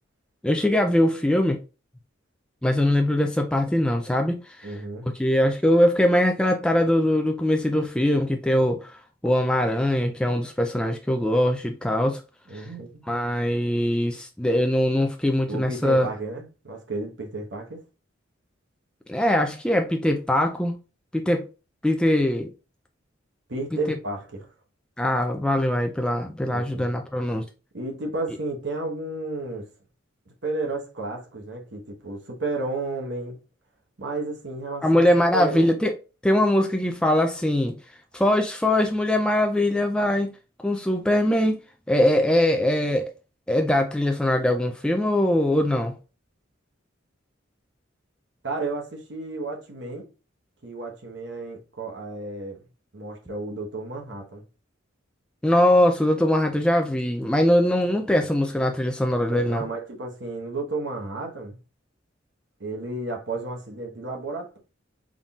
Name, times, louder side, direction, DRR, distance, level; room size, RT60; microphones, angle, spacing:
voice 1, 0.4-1.6 2.6-4.7 5.2-9.0 9.2-12.2 12.5-12.7 13.1-16.1 19.1-20.7 21.1-21.5 21.8-22.5 25.0-27.4 34.8-35.9 36.2-37.8 38.1-40.3 40.6-41.6 41.9-43.1 43.5-45.9 55.4-59.6, left 1 dB, 5° left, 0.3 m, -22 dB
voice 2, 4.6-5.1 12.5-13.0 15.5-17.8 23.5-24.5 26.5-26.9 27.7-29.7 30.3-33.4 34.0-35.0 35.3-35.7 48.4-50.1 50.6-52.6 52.9-54.4 59.3-61.6 62.6-64.6, right 2 dB, 65° right, 1.1 m, -32 dB
3.9 x 3.7 x 2.3 m
head